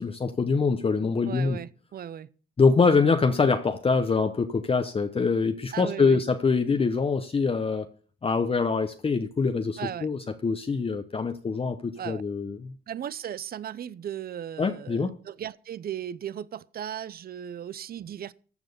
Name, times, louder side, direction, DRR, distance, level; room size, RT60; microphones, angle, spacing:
voice 1, 0.0-1.6 2.6-7.9 8.2-12.8 14.6-15.1, left 4 dB, 30° left, 0.9 m, -24 dB
voice 2, 1.3-2.3 5.7-6.2 9.8-10.1 12.0-12.2 12.9-18.3, right 10 dB, 50° right, 0.6 m, -36 dB
14.0 x 6.2 x 6.7 m
cardioid pair, 90°, 20 cm